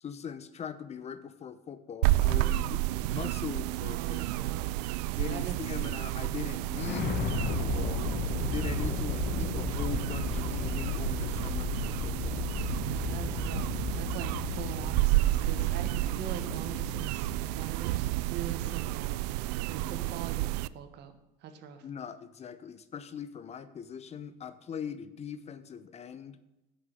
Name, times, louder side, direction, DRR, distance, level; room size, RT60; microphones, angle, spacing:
voice 1, 0.0-4.6 5.1-8.1 8.5-12.5 19.8-20.1 21.8-26.4, left 7 dB, 35° left, 13 dB, 0.8 m, -41 dB
sound 1, 2.0-20.7, right 17 dB, 85° right, 0.4 m, -31 dB
voice 2, 2.3-2.6 3.9-4.8 5.3-5.6 12.9-19.2 19.7-21.1 21.4-21.8, right 8 dB, 55° right, 9 dB, 1.6 m, -43 dB
sound 2, 6.7-17.8, left 6 dB, 55° left, 1.3 m, -35 dB
10.5 x 6.7 x 7.8 m, 0.94 s
supercardioid pair, 105°, 20 cm